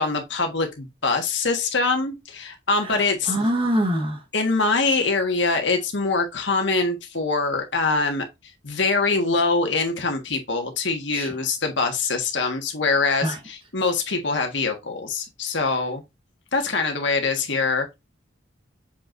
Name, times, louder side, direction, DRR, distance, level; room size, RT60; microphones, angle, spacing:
voice 1, 0.0-3.3 4.3-8.2 8.6-16.0 16.5-17.9, left 3 dB, 65° left, 1.5 m, -24 dB
voice 2, 2.8-4.2 11.1-11.3 13.2-13.4, equal, 30° right, 1.2 m, -25 dB
7.0 x 5.2 x 2.6 m
head